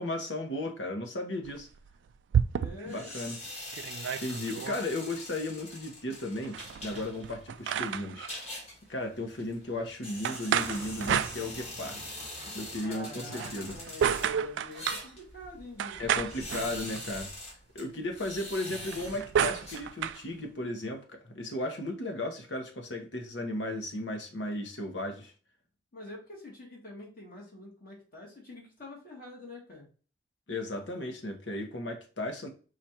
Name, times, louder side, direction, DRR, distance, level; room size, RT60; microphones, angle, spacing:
voice 1, 0.0-1.7 2.8-3.4 4.2-8.3 8.9-12.0 12.5-13.7 16.0-17.3 17.7-25.3 30.5-32.5, left 1 dB, 75° left, 1.1 m, -35 dB
sound 1, 1.5-3.0 3.4-3.5 3.7-4.8 6.4-8.3 10.2-11.9 13.3-15.1 15.8-17.2 18.7-20.2, right 8 dB, 70° right, 0.3 m, -31 dB
voice 2, 2.5-3.1 12.8-16.6 25.9-29.9, left 1 dB, 55° left, 1.7 m, -46 dB
sound 2, 2.9-20.4, left 1 dB, 35° left, 1.6 m, -44 dB
sound 3, 10.5-12.9, right 2 dB, 20° right, 0.6 m, -47 dB
4.9 x 2.5 x 4.3 m
head